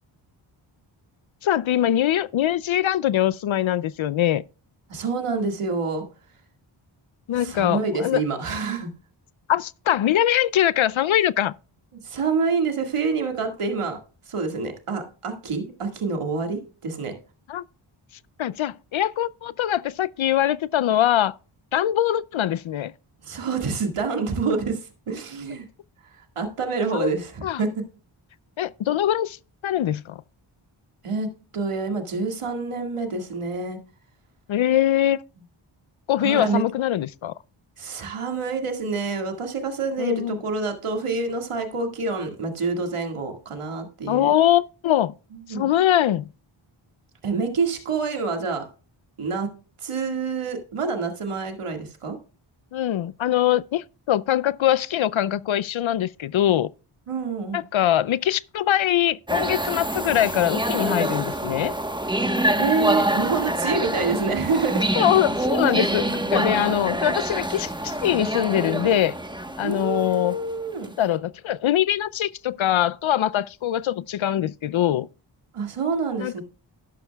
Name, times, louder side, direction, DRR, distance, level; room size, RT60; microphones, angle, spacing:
voice 1, 1.4-4.4 7.3-8.2 9.5-11.5 17.5-17.6 18.4-21.3 21.7-22.9 26.9-27.1 27.4-27.6 28.6-30.2 34.5-35.2 36.1-37.3 40.0-40.4 44.1-45.1 45.5-46.3 52.7-56.7 57.5-61.8 65.0-69.1 69.6-70.4 71.0-75.1 76.2-76.4, left 11 dB, 70° left, 0.5 m, -22 dB
voice 2, 4.9-6.1 7.3-8.9 12.0-14.0 14.3-17.1 23.2-25.7 26.0-27.8 31.0-33.8 36.2-36.6 37.8-44.3 45.3-45.7 47.2-48.6 49.2-49.5 49.8-52.2 57.1-57.6 62.6-64.8 69.6-70.9 75.5-76.4, right 4 dB, 80° right, 2.1 m, -27 dB
sound 1, 59.3-70.9, right 1 dB, 10° right, 1.2 m, -26 dB
11.5 x 11.0 x 2.3 m
cardioid pair, 60°, 50 cm